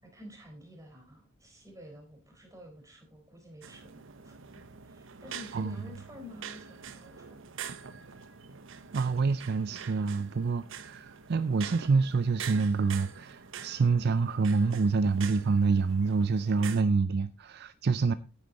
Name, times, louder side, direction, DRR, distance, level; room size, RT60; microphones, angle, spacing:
voice 1, 0.0-7.4, left 1 dB, 15° right, 4.1 m, -50 dB
sound 1, 3.6-16.8, right 7 dB, 65° right, 1.0 m, -45 dB
voice 2, 8.9-18.1, right 4 dB, 50° right, 0.5 m, -27 dB
9.8 x 9.7 x 4.0 m
head